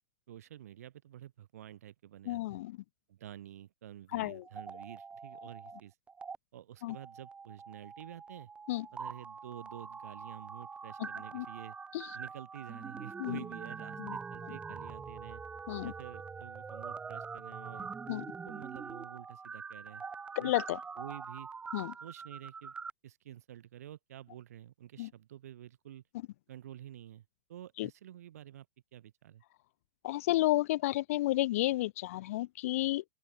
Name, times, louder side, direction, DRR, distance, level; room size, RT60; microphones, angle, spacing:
voice 1, 0.3-2.6 3.1-5.9 6.5-8.5 8.9-11.8 12.1-15.4 15.8-17.9 18.4-20.0 20.4-20.5 21.0-21.5 22.0-22.7 23.0-26.0 26.5-27.2 27.5-28.7 28.9-29.4, right 11 dB, 70° right, 2.3 m, -49 dB
voice 2, 2.3-2.8 4.1-4.4 6.8-7.0 8.7-8.9 11.0-11.1 11.3-11.5 11.9-12.1 13.2-13.4 14.0-14.2 15.7-15.9 18.1-18.2 20.4-20.8 21.7-21.9 25.0-25.1 27.8-27.9 30.0-33.0, left 16 dB, 60° left, 0.4 m, -31 dB
sound 1, 4.4-5.8 6.1-6.4 6.9-22.9, right 5 dB, 15° right, 0.5 m, -44 dB
open air
hypercardioid pair, 110°, 9 cm